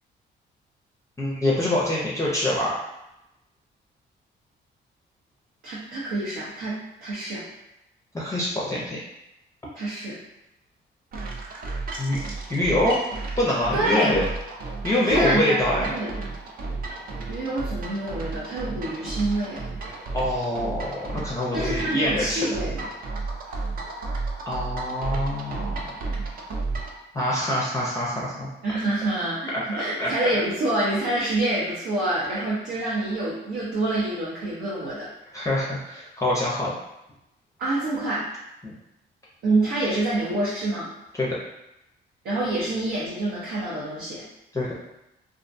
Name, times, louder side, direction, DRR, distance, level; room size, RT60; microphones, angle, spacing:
voice 1, 1.2-2.7 8.1-9.0 12.0-12.2 12.5-13.0 13.4-14.2 14.8-15.9 20.1-22.5 24.5-25.7 27.1-28.5 29.5-30.1 35.3-36.7 38.6-38.7 41.2-41.4 44.5-44.8, left 1 dB, 15° left, -6 dB, 0.5 m, -25 dB
voice 2, 5.6-7.4 9.7-10.2 13.7-14.1 15.0-16.1 17.3-19.6 21.5-22.9 23.5-23.6 28.6-35.1 37.6-38.3 39.4-40.9 42.2-44.2, right 2 dB, 75° right, -8 dB, 0.7 m, -26 dB
sound 1, 11.1-27.0, right 3 dB, 45° right, 0.4 m, -33 dB
2.4 x 2.1 x 2.6 m, 0.88 s
cardioid pair, 90°, 20 cm